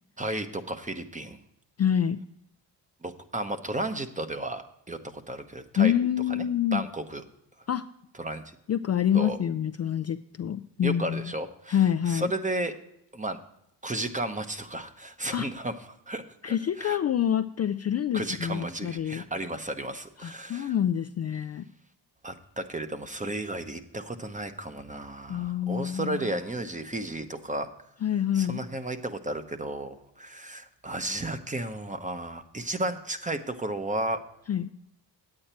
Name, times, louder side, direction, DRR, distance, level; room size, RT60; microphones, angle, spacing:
voice 1, 0.2-1.4 3.0-5.9 6.3-6.4 6.7-7.2 8.2-8.6 9.1-9.4 10.8-12.7 13.1-13.4 13.8-17.0 18.1-20.7 22.2-27.7 28.3-34.2, right 1 dB, 15° right, 9 dB, 0.9 m, -33 dB
voice 2, 1.8-2.2 5.8-6.8 7.7-7.9 8.7-11.3 11.7-12.3 15.3-15.5 16.4-19.2 20.2-21.7 25.3-26.3 28.0-28.6 34.5-34.7, left 9 dB, 35° left, 10 dB, 0.4 m, -27 dB
8.8 x 8.8 x 4.4 m, 0.80 s
cardioid pair, 70°, 44 cm